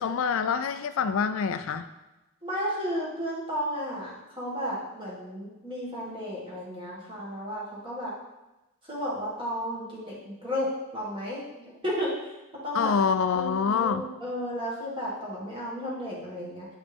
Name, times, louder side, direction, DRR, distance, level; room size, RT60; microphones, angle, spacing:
voice 1, 0.0-1.8 12.7-14.0, left 6 dB, 65° left, 10 dB, 0.3 m, -26 dB
voice 2, 2.4-8.1 8.9-11.4 11.8-12.3 12.6-12.9 13.4-16.7, equal, 20° right, -6 dB, 2.0 m, -33 dB
9.5 x 5.1 x 3.5 m, 1.0 s
head